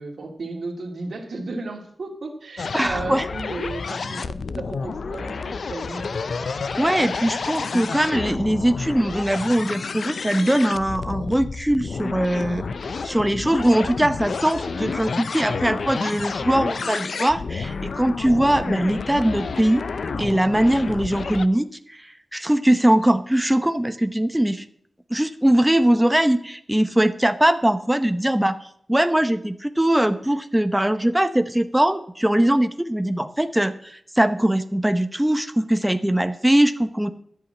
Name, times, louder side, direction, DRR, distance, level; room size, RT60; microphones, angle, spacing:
voice 1, 0.0-6.1 12.4-12.6, right 3 dB, 85° right, 3 dB, 2.4 m, -34 dB
sound 1, 2.6-21.5, left 4 dB, 80° left, 0.5 m, -30 dB
voice 2, 2.7-3.3 6.8-12.6 13.0-19.8 20.2-24.6 25.1-28.6 28.9-37.1, right 1 dB, 10° right, 9 dB, 0.8 m, -21 dB
13.0 x 5.7 x 8.5 m, 0.65 s
wide cardioid pair, 65°, 0 cm